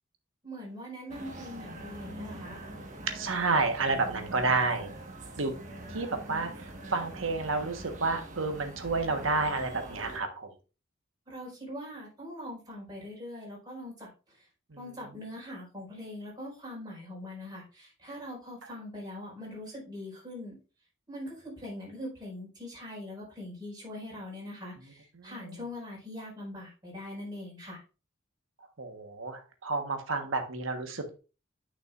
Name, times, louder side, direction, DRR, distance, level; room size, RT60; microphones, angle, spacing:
voice 1, 0.4-2.6 11.3-14.5 14.8-20.5 21.1-27.8, left 1 dB, 20° right, -5 dB, 4.6 m, -42 dB
sound 1, 1.1-10.2, right 1 dB, 40° right, 1.4 m, -44 dB
voice 2, 3.1-4.9 5.4-5.6 5.9-10.5 25.2-25.3 28.8-31.2, right 3 dB, 80° right, 6 dB, 1.3 m, -30 dB
9.5 x 5.9 x 2.5 m, 0.32 s
head